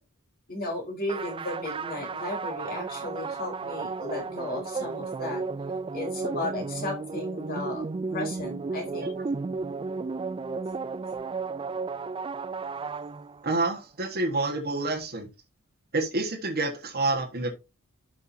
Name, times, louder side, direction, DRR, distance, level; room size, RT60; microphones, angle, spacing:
voice 1, 0.5-5.4 5.9-7.8 8.1-9.1, left 2 dB, 45° left, 4.0 m, -34 dB
sound 1, 1.1-13.6, right 4 dB, 25° right, 0.3 m, -33 dB
voice 2, 13.4-15.3 15.9-17.6, right 2 dB, 50° right, 1.5 m, -28 dB
11.5 x 6.1 x 2.7 m
head